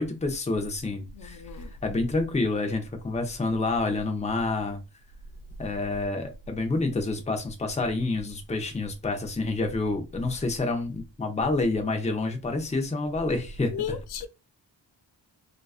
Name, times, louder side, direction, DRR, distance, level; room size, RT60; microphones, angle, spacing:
voice 1, 0.0-1.4 1.8-4.8 5.6-13.7, left 3 dB, 15° left, 0.7 m, -28 dB
voice 2, 1.1-1.7 13.7-14.3, left 7 dB, 55° left, 0.5 m, -34 dB
2.3 x 2.3 x 2.4 m
cardioid pair, 45°, 46 cm